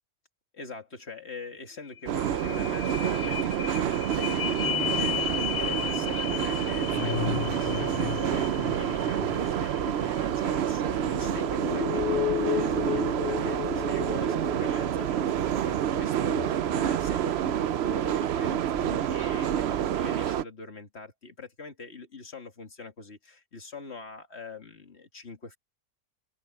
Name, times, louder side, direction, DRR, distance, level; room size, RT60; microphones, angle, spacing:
voice 1, 0.5-25.6, left 4 dB, 45° left, 2.3 m, -43 dB
sound 1, 1.6-1.7 1.9-17.9 18.4-18.5, left 11 dB, 85° left, 0.5 m, -34 dB
sound 2, 2.1-20.4, right 10 dB, 60° right, 0.7 m, -28 dB
sound 3, 4.9-17.9, right 3 dB, 45° right, 7.3 m, -64 dB
open air
omnidirectional pair, 1.6 m